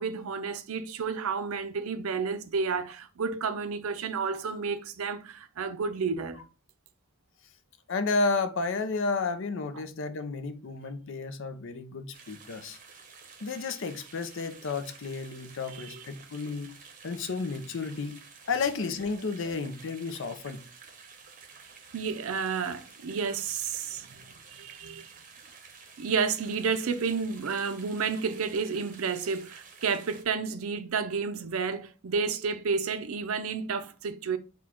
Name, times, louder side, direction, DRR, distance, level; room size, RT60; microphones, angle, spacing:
voice 1, 0.0-6.4 9.7-9.8 15.7-16.0 21.9-24.2 24.5-25.1 26.0-34.4, right 5 dB, 90° right, 0.5 m, -31 dB
voice 2, 7.9-12.8 13.4-16.7 17.0-18.2 18.5-20.6, left 4 dB, 65° left, 0.6 m, -32 dB
sound 1, 12.1-30.2, right 5 dB, 40° right, 0.7 m, -51 dB
4.2 x 2.3 x 4.3 m
head